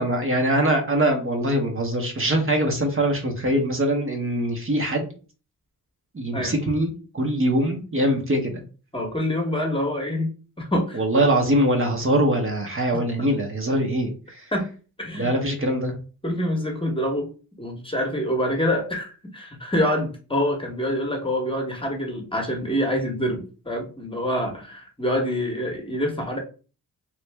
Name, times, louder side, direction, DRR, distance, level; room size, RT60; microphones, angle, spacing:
voice 1, 0.0-5.1 6.1-8.5 10.9-14.4 15.2-15.9, right 1 dB, 35° right, 3 dB, 0.9 m, -23 dB
voice 2, 8.9-10.3 10.6-11.2 14.5-14.7 15.0-15.3 16.2-17.3 17.6-26.4, equal, 15° left, 2 dB, 1.0 m, -26 dB
3.1 x 2.5 x 3.3 m, 0.36 s
cardioid pair, 80°, 35 cm